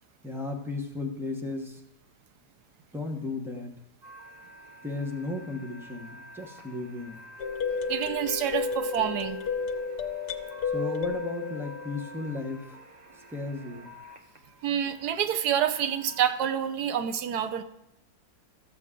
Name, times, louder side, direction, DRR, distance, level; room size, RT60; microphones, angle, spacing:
voice 1, 0.2-1.8 2.9-3.8 4.8-7.2 10.7-12.8 13.1-13.9, left 2 dB, ahead, 2 dB, 0.7 m, -35 dB
sound 1, 4.0-16.3, equal, 30° right, 1.1 m, -49 dB
sound 2, 7.4-12.5, left 5 dB, 75° left, 1.3 m, -32 dB
voice 2, 7.9-9.4 14.6-17.6, right 9 dB, 80° right, 9 dB, 1.2 m, -27 dB
14.0 x 7.0 x 3.7 m, 0.82 s
omnidirectional pair, 1.7 m